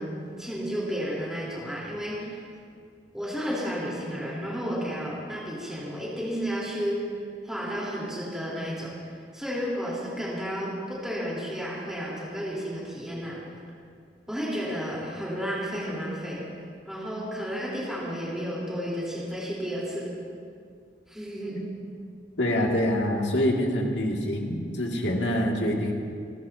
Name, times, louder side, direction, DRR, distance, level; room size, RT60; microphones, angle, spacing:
voice 1, 0.0-2.4 3.1-7.1 7.4-13.4 14.3-16.4 16.8-20.1 21.1-21.6, equal, 5° right, -7 dB, 3.9 m, -32 dB
voice 2, 22.4-25.9, equal, 75° left, -1 dB, 2.4 m, -25 dB
28.5 x 14.5 x 2.9 m, 2.2 s
head